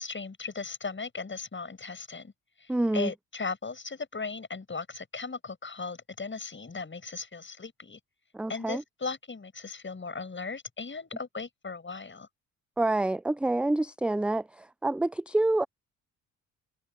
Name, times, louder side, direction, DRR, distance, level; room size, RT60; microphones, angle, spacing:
voice 1, 0.0-2.3 2.6-8.0 8.5-12.3, left 4 dB, 30° left, 7.8 m, -37 dB
voice 2, 2.7-3.1 8.3-8.8 12.8-15.7, right 2 dB, 5° right, 0.4 m, -27 dB
figure-of-eight pair, 50°, 42 cm